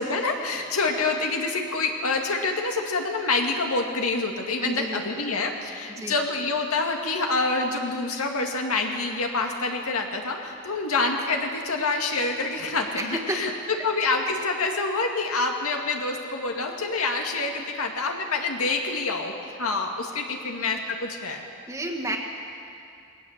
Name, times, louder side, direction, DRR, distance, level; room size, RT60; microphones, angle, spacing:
voice 1, 0.0-21.4, left 3 dB, 80° left, 2 dB, 2.2 m, -27 dB
voice 2, 4.6-5.3 5.9-6.1 13.0-13.4 21.7-22.2, right 1 dB, 15° right, 1 dB, 1.7 m, -31 dB
20.5 x 18.0 x 7.4 m, 2.5 s
head